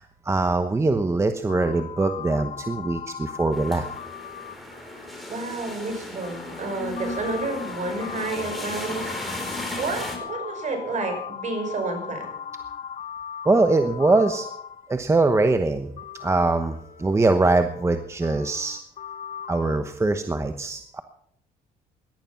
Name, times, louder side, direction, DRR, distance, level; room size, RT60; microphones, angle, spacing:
voice 1, 0.0-3.9 13.4-14.5 14.9-15.9 16.2-18.8 19.5-21.0, right 3 dB, 15° right, 8 dB, 1.0 m, -22 dB
sound 1, 1.5-15.3 16.0-19.8, left 8 dB, 45° left, 1.2 m, -38 dB
sound 2, 3.5-10.2, left 1 dB, ahead, 4.3 m, -36 dB
voice 2, 5.3-12.3, right 3 dB, 45° right, 5 dB, 5.6 m, -30 dB
18.0 x 12.0 x 5.9 m, 0.66 s
cardioid pair, 110°, 17 cm